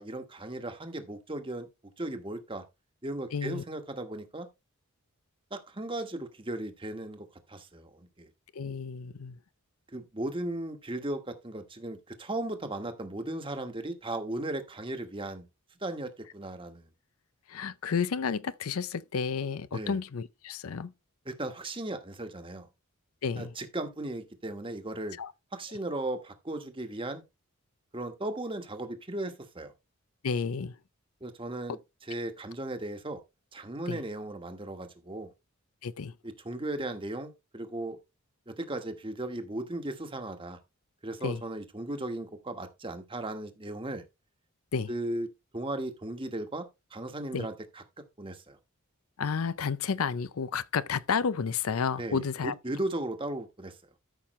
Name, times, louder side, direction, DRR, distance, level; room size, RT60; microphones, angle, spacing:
voice 1, 0.0-1.7 2.0-2.6 3.0-4.5 5.5-8.3 9.9-15.5 15.8-16.9 19.7-20.0 21.3-22.7 23.4-25.2 25.5-27.2 27.9-29.7 31.2-31.8 32.1-33.2 33.5-35.3 36.2-38.0 38.5-40.6 41.0-44.0 44.9-45.3 45.5-46.7 46.9-47.8 48.2-48.6 52.0-53.8, right 1 dB, 25° right, 1.3 m, -36 dB
voice 2, 3.3-3.6 8.5-9.4 17.5-20.9 23.2-23.5 25.2-25.3 30.2-30.7 33.9-34.0 35.8-36.1 41.2-41.4 44.7-44.9 47.3-47.5 49.2-52.5, left 6 dB, 80° left, 0.5 m, -31 dB
13.0 x 5.7 x 3.1 m
head